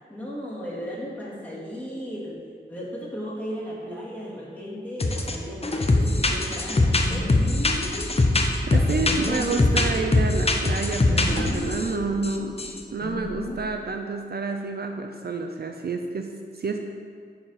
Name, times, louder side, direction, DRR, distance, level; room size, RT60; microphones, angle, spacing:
voice 1, 0.1-2.4 2.7-7.3 8.7-9.7, equal, 10° left, -6 dB, 2.5 m, -35 dB
sound 1, 5.0-5.4 5.6-11.9 12.2-12.8, left 2 dB, 30° left, 0.8 m, -22 dB
sound 2, 5.9-13.6, left 2 dB, 60° left, 1.4 m, -36 dB
voice 2, 8.7-12.6 12.9-16.8, right 4 dB, 55° right, 4 dB, 0.6 m, -29 dB
8.9 x 4.9 x 6.6 m, 2.1 s
wide cardioid pair, 95°, 19 cm